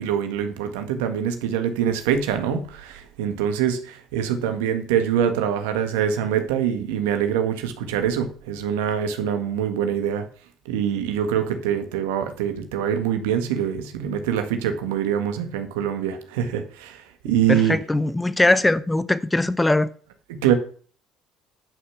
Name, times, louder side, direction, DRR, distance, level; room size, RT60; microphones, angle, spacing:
voice 1, 0.0-10.2 10.7-17.8 20.3-20.5, right 9 dB, 90° right, 1.8 m, -24 dB
voice 2, 17.5-19.9, left 2 dB, 15° left, 0.8 m, -20 dB
11.0 x 5.8 x 7.2 m
supercardioid pair, 75°, 0 cm